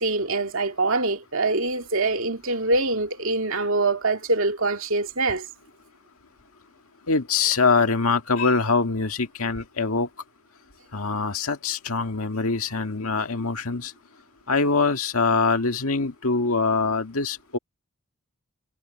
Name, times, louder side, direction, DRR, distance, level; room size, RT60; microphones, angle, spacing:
voice 1, 0.0-5.5, right 3 dB, 70° right, 2.3 m, -24 dB
voice 2, 7.1-10.1 10.9-13.9 14.5-17.6, left 4 dB, 85° left, 1.8 m, -23 dB
head